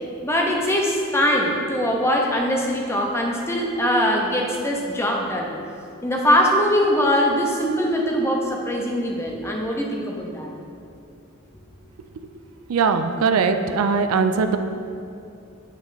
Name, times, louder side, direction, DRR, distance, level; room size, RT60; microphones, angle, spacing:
voice 1, 0.2-5.5 6.0-10.5, equal, 10° left, 0 dB, 0.5 m, -22 dB
voice 2, 12.7-14.6, right 5 dB, 85° right, 8 dB, 0.4 m, -20 dB
8.2 x 3.0 x 3.9 m, 2.7 s
head